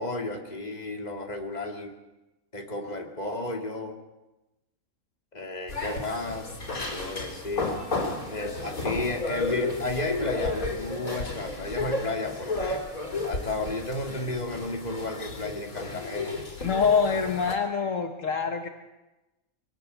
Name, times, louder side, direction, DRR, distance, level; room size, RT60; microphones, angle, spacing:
voice 1, 0.0-1.9 2.5-4.0 5.3-7.8 8.3-12.8 13.2-16.4, left 2 dB, 30° left, 3 dB, 2.5 m, -33 dB
sound 1, 5.7-17.5, left 2 dB, 85° left, 4.1 m, -32 dB
voice 2, 16.6-18.7, left 5 dB, 65° left, 6 dB, 1.5 m, -25 dB
22.5 x 18.0 x 8.1 m, 1.0 s
omnidirectional pair, 1.4 m